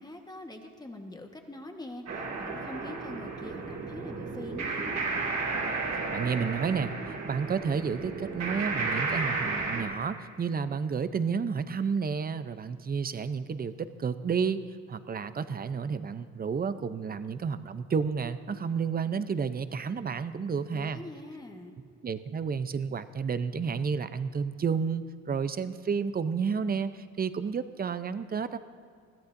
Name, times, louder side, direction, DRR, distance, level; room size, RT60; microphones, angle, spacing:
voice 1, 0.0-5.0 20.7-21.8, left 1 dB, 15° left, 4 dB, 1.4 m, -44 dB
sound 1, 2.1-9.8, right 3 dB, 65° right, 2.4 m, -33 dB
voice 2, 6.1-14.6 14.9-21.0 22.0-28.6, right 6 dB, 30° right, 12 dB, 0.6 m, -31 dB
21.0 x 14.0 x 2.6 m, 2.2 s
cardioid pair, 90°, 30 cm